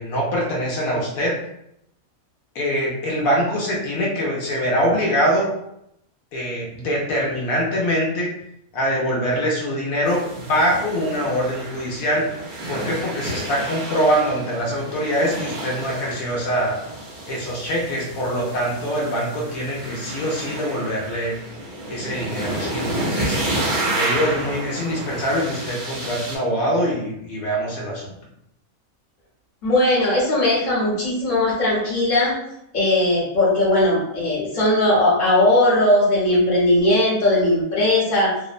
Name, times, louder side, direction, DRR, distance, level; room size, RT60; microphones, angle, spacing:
voice 1, 0.0-1.4 2.5-5.5 6.3-8.3 8.7-12.3 12.7-16.8 17.3-21.3 21.9-23.4 23.9-28.1, equal, 75° left, -3 dB, 1.1 m, -23 dB
sound 1, 10.1-26.4, right 1 dB, 45° right, 0.7 m, -30 dB
voice 2, 29.6-32.4 32.7-38.3, left 1 dB, 40° left, -6 dB, 0.9 m, -18 dB
2.8 x 2.0 x 2.4 m, 0.78 s
omnidirectional pair, 1.5 m